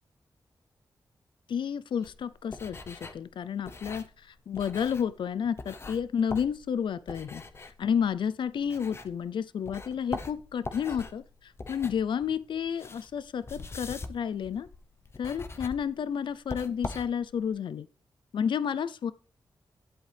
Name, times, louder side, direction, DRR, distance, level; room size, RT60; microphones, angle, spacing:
voice 1, 1.5-7.4 7.8-14.7 15.2-17.9 18.3-19.1, left 7 dB, 70° left, 0.5 m, -31 dB
sound 1, 2.0-9.3 9.6-17.5, left 3 dB, 30° left, 0.8 m, -43 dB
11.0 x 7.6 x 3.3 m
wide cardioid pair, 170°, 9 cm